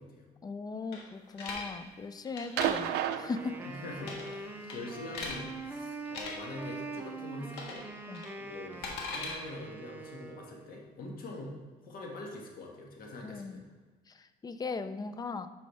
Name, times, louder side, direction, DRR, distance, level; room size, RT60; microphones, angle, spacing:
voice 1, 0.4-3.6 8.1-8.3 13.2-13.6 14.1-15.5, left 4 dB, 25° left, 11 dB, 0.4 m, -38 dB
sound 1, 0.9-1.7 2.2-2.7 4.0-4.4 4.7-5.4 6.1-6.3 7.5-7.9 8.1-9.3, left 4 dB, 80° left, 1.5 m, -39 dB
sound 2, 2.6-4.2 5.5-5.6, right 11 dB, 80° right, 0.4 m, -33 dB
Wind instrument woodwind instrument, 3.2-10.8, right 3 dB, 10° right, 0.7 m, -43 dB
voice 2, 3.7-7.8 8.4-11.5 11.8-13.6, left 2 dB, 60° left, 0 dB, 1.6 m, -44 dB
8.3 x 5.5 x 3.3 m, 1.4 s
cardioid pair, 110°, 17 cm